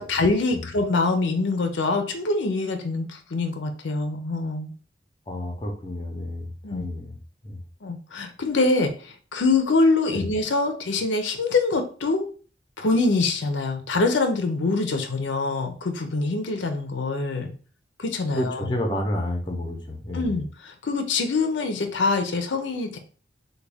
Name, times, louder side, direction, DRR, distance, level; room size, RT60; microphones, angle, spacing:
voice 1, 0.0-4.7 6.6-6.9 7.8-12.2 12.8-17.5 18.0-18.7 20.1-23.0, left 3 dB, 85° left, 6 dB, 0.6 m, -24 dB
voice 2, 5.3-7.1 7.4-7.6 10.1-10.3 18.4-20.3, left 1 dB, 25° left, 2 dB, 0.6 m, -30 dB
3.4 x 2.3 x 3.3 m, 0.39 s
head